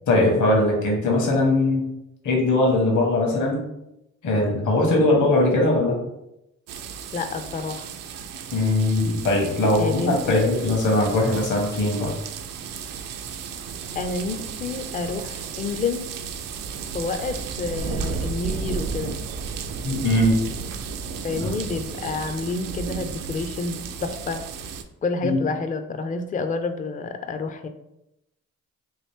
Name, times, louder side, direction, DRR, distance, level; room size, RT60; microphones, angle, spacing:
voice 1, 0.1-1.9 2.2-3.7 4.2-6.0 8.5-12.2 19.8-20.4 21.4-21.5 25.2-25.4, left 2 dB, 60° left, -1 dB, 1.1 m, -20 dB
sound 1, 6.7-24.8, right 5 dB, 70° right, 0.5 m, -33 dB
voice 2, 7.1-7.9 9.8-10.5 13.9-16.0 16.9-19.1 21.2-24.4 25.0-27.7, left 3 dB, 25° left, 8 dB, 0.4 m, -29 dB
3.1 x 2.5 x 3.3 m, 0.86 s
supercardioid pair, 55°, 34 cm